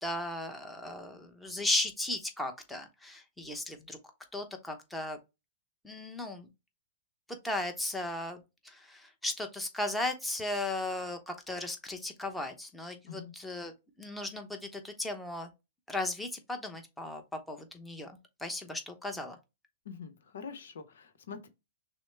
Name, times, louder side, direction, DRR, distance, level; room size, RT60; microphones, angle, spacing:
voice 1, 0.0-4.0 4.3-5.2 5.8-6.5 7.4-13.7 14.0-15.5 15.9-17.2 17.5-18.1 18.4-19.4, left 2 dB, 5° left, 0.9 m, -36 dB
voice 2, 19.8-21.5, left 6 dB, 75° left, 0.8 m, -44 dB
6.1 x 2.1 x 3.3 m
hypercardioid pair, 120°, 0 cm